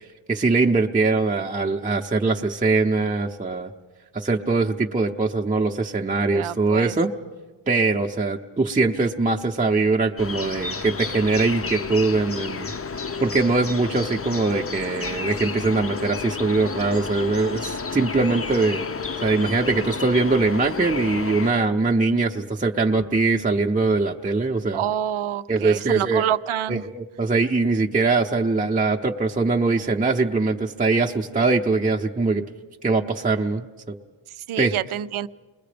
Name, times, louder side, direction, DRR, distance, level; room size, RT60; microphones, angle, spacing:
voice 1, 0.3-3.7 4.1-7.1 7.7-12.7 13.2-18.8 19.2-24.8 25.5-26.2 26.7-32.4 32.8-33.7 34.6-34.7, right 3 dB, 15° right, 1 dB, 0.7 m, -22 dB
voice 2, 6.3-6.9 24.7-26.8 34.4-35.3, right 11 dB, 75° right, 16 dB, 0.6 m, -27 dB
sound 1, 10.2-21.5, left 4 dB, 30° left, 0.6 m, -31 dB
29.0 x 21.0 x 5.1 m, 1.3 s
wide cardioid pair, 135°, 49 cm